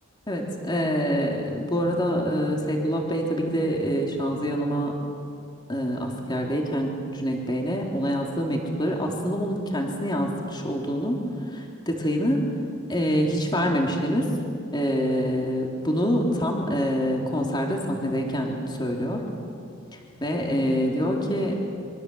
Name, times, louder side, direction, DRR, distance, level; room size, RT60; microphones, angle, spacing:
voice 1, 0.3-4.9 5.7-11.2 11.5-12.4 12.9-14.3 14.7-19.2 19.9-21.6, equal, 20° left, 0 dB, 3.5 m, -26 dB
26.5 x 24.5 x 8.0 m, 2.4 s
head